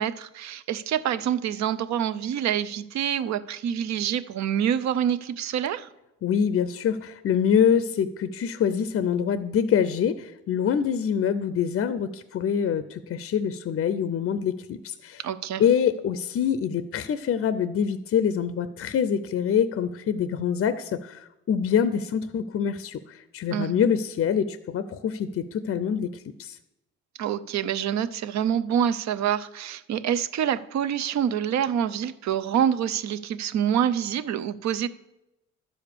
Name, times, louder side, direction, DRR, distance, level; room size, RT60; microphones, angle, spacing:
voice 1, 0.0-5.9 15.2-15.6 23.5-23.8 27.2-34.9, right 9 dB, 65° right, 15 dB, 0.6 m, -26 dB
voice 2, 6.2-15.2 15.6-26.6, left 8 dB, 45° left, 13 dB, 0.5 m, -25 dB
11.5 x 5.0 x 6.7 m, 0.94 s
cardioid pair, 90°, 30 cm